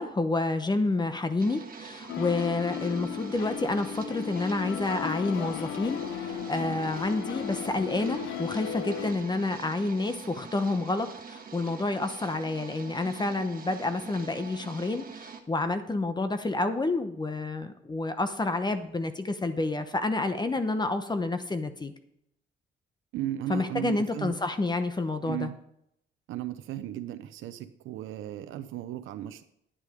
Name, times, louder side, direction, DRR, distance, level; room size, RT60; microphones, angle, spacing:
voice 1, 0.0-21.9 23.5-25.5, left 2 dB, 20° left, 9 dB, 0.9 m, -29 dB
sound 1, 1.4-15.4, right 5 dB, 45° right, 1.4 m, -45 dB
sound 2, 2.1-9.1, left 9 dB, 80° left, 0.6 m, -35 dB
voice 2, 23.1-24.4 25.3-25.6 26.3-29.4, right 12 dB, 85° right, 10 dB, 0.7 m, -35 dB
9.9 x 8.2 x 5.1 m, 0.76 s
cardioid pair, 90°, 20 cm